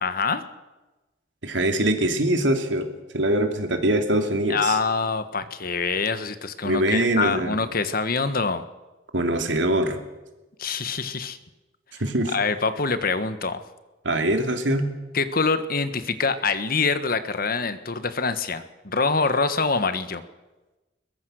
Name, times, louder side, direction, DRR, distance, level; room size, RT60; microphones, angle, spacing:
voice 1, 0.0-0.4 4.5-8.6 10.6-11.4 12.3-13.6 15.1-20.2, left 4 dB, 55° left, 11 dB, 1.4 m, -25 dB
voice 2, 1.4-4.8 6.6-7.6 9.1-10.0 12.0-12.3 14.0-14.9, right 1 dB, 80° right, 6 dB, 2.9 m, -23 dB
22.0 x 20.5 x 6.5 m, 1.1 s
head